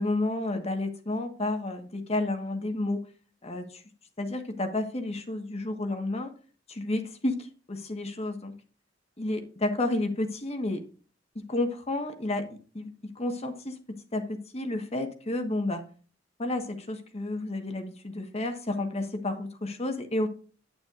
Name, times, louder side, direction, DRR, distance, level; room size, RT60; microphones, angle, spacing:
voice 1, 0.0-3.0 3.4-3.8 4.2-6.3 6.7-8.5 9.2-10.8 11.3-12.5 12.7-15.8 16.4-20.3, left 2 dB, 35° left, 6 dB, 1.3 m, -31 dB
9.3 x 9.2 x 2.5 m, 0.38 s
head